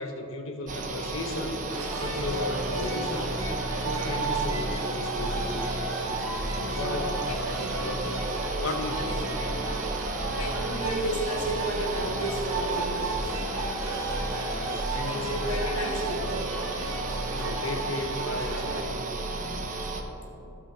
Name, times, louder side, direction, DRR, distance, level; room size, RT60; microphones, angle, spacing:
voice 1, 0.0-1.6 2.0-3.3 3.8-5.7 6.0-7.5 7.8-9.2 14.6-15.3 17.3-19.0, left 2 dB, 60° left, 5 dB, 0.9 m, -35 dB
sound 1, 0.7-20.0, right 2 dB, 35° right, 0.8 m, -33 dB
sound 2, 1.7-18.8, right 3 dB, 65° right, 1.6 m, -34 dB
voice 2, 6.5-7.0 7.6-7.8 10.3-13.0 15.0-16.5 19.2-19.7 20.2-20.5, right 1 dB, 85° left, -1 dB, 1.7 m, -33 dB
15.0 x 5.8 x 4.3 m, 2.9 s
head